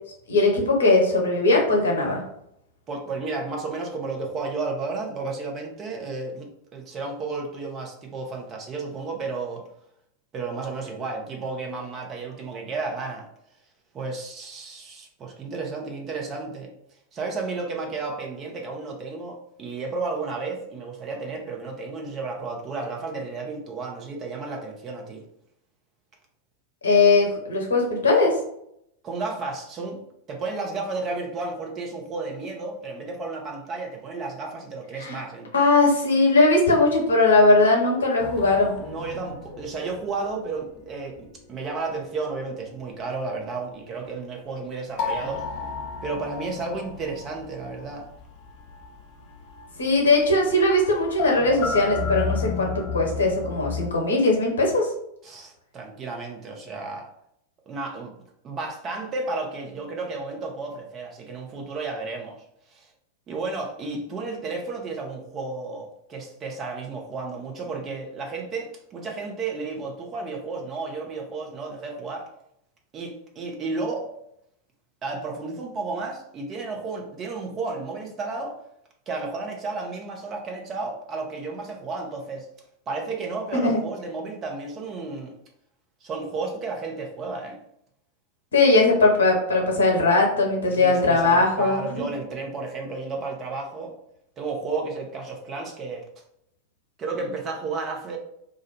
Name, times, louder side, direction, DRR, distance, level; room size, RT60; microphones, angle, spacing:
voice 1, 0.3-2.2 26.8-28.3 35.0-35.2 35.5-38.7 49.8-54.9 83.5-83.8 88.5-92.0, left 2 dB, 65° left, 0 dB, 0.9 m, -19 dB
voice 2, 2.9-9.6 10.3-13.3 13.9-16.7 17.1-25.2 29.0-30.0 30.3-35.5 38.8-45.4 46.0-48.1 55.2-57.1 57.7-58.1 58.4-62.4 62.7-62.9 63.3-72.3 72.9-74.1 75.0-78.6 79.1-82.5 82.9-85.3 86.0-87.6 90.7-94.0 94.4-96.0 97.0-98.2, right 3 dB, 25° right, 0 dB, 0.7 m, -32 dB
sound 1, 38.2-42.9 43.2-44.3 44.8-53.9, left 6 dB, 40° left, 0.4 m, -34 dB
2.5 x 2.1 x 4.0 m, 0.74 s
figure-of-eight pair, 90°, 0 cm